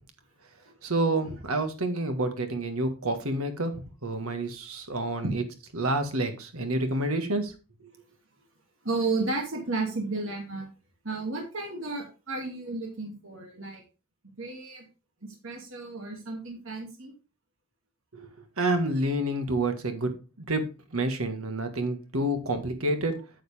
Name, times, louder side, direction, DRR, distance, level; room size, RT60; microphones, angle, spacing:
voice 1, 0.8-3.7 4.0-5.4 5.7-7.5 18.1-18.3 18.6-20.1 20.4-23.2, right 1 dB, 80° right, 8 dB, 1.6 m, -28 dB
voice 2, 8.8-10.7 11.0-13.8 14.2-14.9 15.2-17.1, right 3 dB, 60° right, 0 dB, 2.4 m, -33 dB
9.3 x 6.6 x 3.4 m, 0.32 s
head